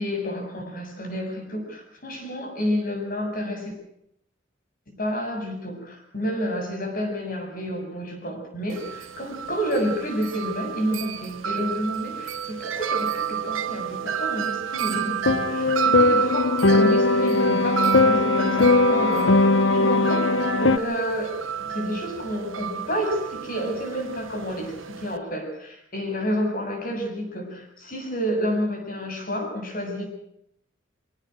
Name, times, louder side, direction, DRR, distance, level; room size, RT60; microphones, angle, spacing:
voice 1, 0.0-3.7 4.9-21.3 21.6-30.1, equal, 45° left, 4 dB, 7.5 m, -30 dB
Wind chime, 8.7-25.2, right 8 dB, 80° right, 1.2 m, -30 dB
sound 1, 15.3-20.8, left 3 dB, 65° left, 0.9 m, -19 dB
24.0 x 18.0 x 6.5 m, 0.75 s
head